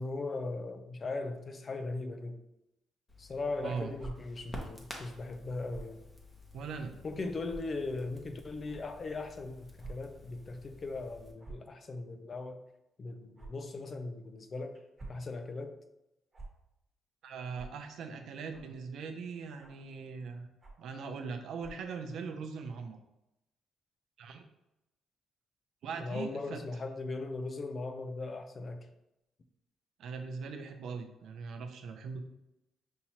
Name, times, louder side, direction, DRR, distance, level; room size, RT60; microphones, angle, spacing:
voice 1, 0.0-2.4 3.2-6.0 7.0-12.6 13.0-14.8 15.1-15.8 26.0-28.9, left 3 dB, 40° left, 0.5 m, -38 dB
Crackle, 3.1-11.3, left 1 dB, 20° left, 0.9 m, -50 dB
voice 2, 3.6-3.9 6.5-6.9 17.2-20.5 20.8-23.0 24.2-24.4 25.8-26.6 30.0-32.2, right 5 dB, 75° right, 0.5 m, -40 dB
sound 1, 4.0-4.1 5.7-5.9 6.7-6.8 7.4-7.6 8.6-8.8 9.8-9.9 10.3-10.4 11.4-11.7 13.3-13.5 14.7-15.2 16.3-16.5 17.5-17.7 18.5-18.8 19.6-19.8 20.6-20.9 21.6-21.9, right 3 dB, 25° right, 1.2 m, -47 dB
5.4 x 2.8 x 2.9 m
cardioid pair, 90°, 0 cm